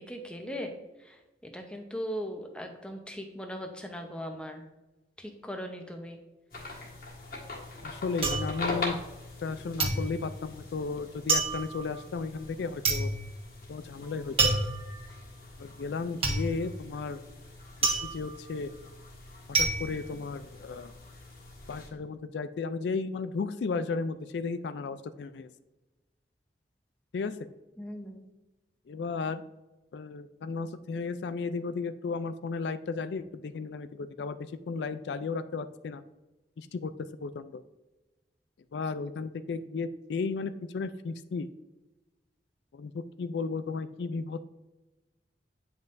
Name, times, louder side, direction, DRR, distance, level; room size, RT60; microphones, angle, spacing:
voice 1, 0.1-0.7 1.0-1.2 1.5-4.6 5.2-6.2 27.8-28.3, equal, 5° left, 3 dB, 0.7 m, -38 dB
sound 1, 6.5-21.9, left 2 dB, 50° left, 1.7 m, -43 dB
sound 2, 7.1-9.5 9.8-20.9 21.2-21.8, right 3 dB, 30° right, 1.3 m, -30 dB
voice 2, 7.8-9.0 9.4-13.1 13.7-14.6 15.6-17.2 18.0-18.7 19.6-20.9 21.7-25.5 27.1-27.5 28.9-29.4 29.9-36.0 36.6-37.6 38.7-41.5 42.7-44.4, left 4 dB, 75° left, 12 dB, 0.4 m, -34 dB
9.2 x 5.5 x 2.6 m, 1.1 s
head